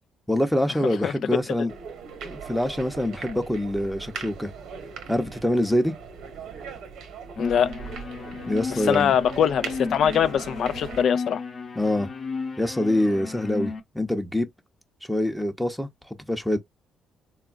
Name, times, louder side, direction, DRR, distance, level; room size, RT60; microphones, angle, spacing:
voice 1, 0.3-1.7 2.2-4.5 5.1-5.9 8.5-9.1 11.8-12.1 12.6-14.5 15.0-16.6, left 1 dB, 5° left, 0.7 m, -25 dB
voice 2, 0.8-1.1 7.4-7.7 8.8-11.4, left 8 dB, 65° left, 0.3 m, -22 dB
sound 1, 1.7-11.0, right 6 dB, 85° right, 1.0 m, -40 dB
sound 2, 7.4-13.8, left 4 dB, 45° left, 0.8 m, -34 dB
3.7 x 2.3 x 2.4 m
cardioid pair, 90°, 0 cm